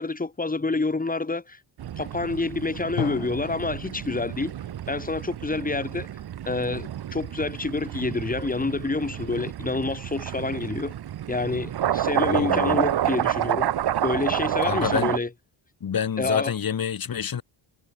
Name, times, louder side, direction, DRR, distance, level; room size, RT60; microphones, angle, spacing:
voice 1, 0.0-1.6 2.0-4.5 4.9-6.1 6.5-10.9 11.3-13.7 14.0-15.3 16.2-16.5, left 3 dB, 20° left, 7.8 m, -28 dB
sound 1, 1.8-15.2, right 11 dB, 55° right, 1.4 m, -29 dB
Drum, 3.0-6.7, left 11 dB, 65° left, 3.5 m, -38 dB
voice 2, 12.3-12.9 14.6-15.1 15.8-17.4, left 8 dB, 50° left, 7.3 m, -27 dB
cardioid pair, 135°, 46 cm